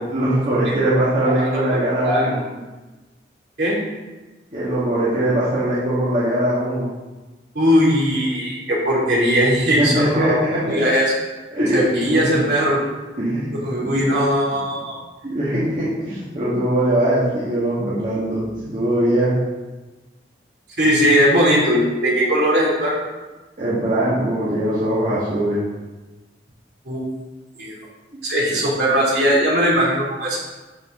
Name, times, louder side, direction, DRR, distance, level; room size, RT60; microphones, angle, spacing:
voice 1, 0.1-2.4 4.5-6.9 9.8-10.8 11.5-12.3 13.2-13.5 13.8-14.0 15.2-19.4 23.6-25.6 28.1-28.2 28.5-28.6, right 1 dB, 45° right, -10 dB, 2.2 m, -21 dB
voice 2, 1.3-1.8 2.0-2.3 3.6-3.8 7.5-10.4 10.7-11.0 11.7-12.8 13.5-14.9 20.8-23.0 26.8-27.0 27.6-27.7 28.2-30.4, equal, 65° right, -5 dB, 3.2 m, -19 dB
12.5 x 5.3 x 3.9 m, 1.2 s
head